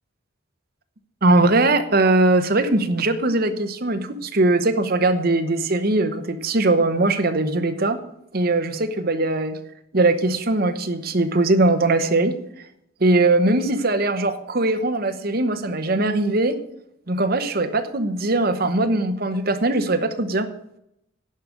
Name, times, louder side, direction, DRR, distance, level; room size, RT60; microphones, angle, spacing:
voice 1, 1.2-8.0 8.3-9.6 9.9-12.3 13.0-16.6 17.1-20.5, right 2 dB, 45° right, 8 dB, 1.0 m, -20 dB
11.0 x 5.2 x 8.4 m, 0.78 s
head